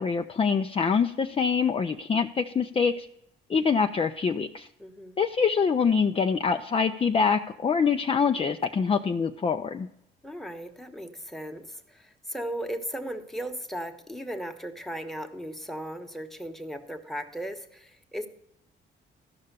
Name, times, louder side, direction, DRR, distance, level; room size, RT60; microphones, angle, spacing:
voice 1, 0.0-3.1 3.5-4.7 5.2-9.9, left 5 dB, 30° left, 6 dB, 0.5 m, -25 dB
voice 2, 4.8-5.2 10.2-18.3, right 1 dB, ahead, 6 dB, 1.1 m, -37 dB
13.0 x 5.5 x 6.7 m, 0.81 s
cardioid pair, 90°, 20 cm